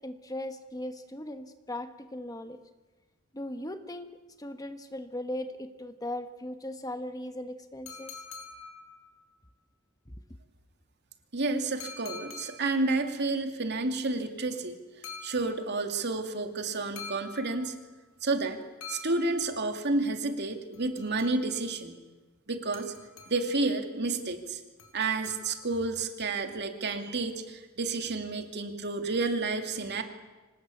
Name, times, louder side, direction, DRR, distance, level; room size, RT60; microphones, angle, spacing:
voice 1, 0.0-2.6 3.3-4.1 4.4-8.2, left 1 dB, 15° left, 8 dB, 1.2 m, -38 dB
sound 1, 7.9-9.3 11.8-12.9 15.0-15.9 17.0-18.0 18.8-19.8 20.7-21.7 22.7-23.6 24.8-25.9, left 4 dB, 85° left, 4.8 m, -46 dB
voice 2, 11.3-14.8 15.2-17.7 18.2-18.6 18.9-22.0 22.5-22.9 23.3-24.6 24.9-30.0, right 3 dB, 50° right, 5 dB, 2.5 m, -30 dB
25.5 x 19.0 x 8.5 m, 1.2 s
head